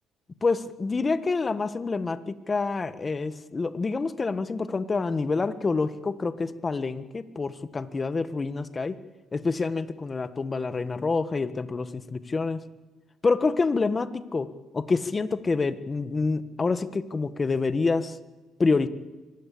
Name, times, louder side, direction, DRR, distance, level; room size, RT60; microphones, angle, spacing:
voice 1, 0.4-9.0 9.3-12.6 13.2-14.5 14.7-18.2 18.6-18.9, left 4 dB, 25° left, 12 dB, 1.5 m, -27 dB
25.0 x 20.0 x 8.6 m, 1.3 s
cardioid pair, 115°, 0 cm